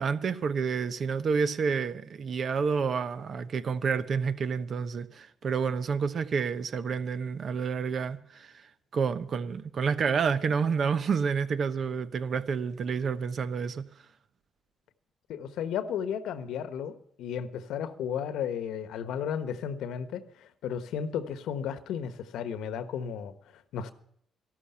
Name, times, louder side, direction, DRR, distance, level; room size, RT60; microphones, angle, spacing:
voice 1, 0.0-8.5 8.9-13.9, right 6 dB, 55° right, 1.0 m, -29 dB
voice 2, 15.3-16.9 17.2-23.9, left 8 dB, 85° left, 1.2 m, -34 dB
13.5 x 12.5 x 5.7 m
cardioid pair, 90°, 0 cm